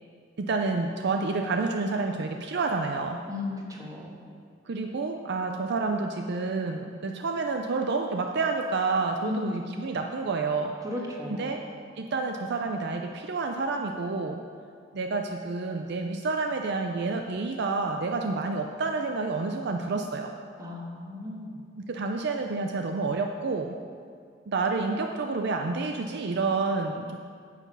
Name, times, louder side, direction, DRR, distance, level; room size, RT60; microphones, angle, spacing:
voice 1, 0.4-3.2 4.7-10.8 11.3-11.6 12.0-14.4 14.9-20.3 21.8-23.8 24.5-27.2, right 3 dB, 60° right, 4 dB, 0.5 m, -29 dB
voice 2, 3.3-4.1 9.2-9.8 10.8-11.6 20.6-21.6, left 2 dB, 20° right, -2 dB, 1.5 m, -36 dB
9.5 x 7.3 x 5.5 m, 2.2 s
head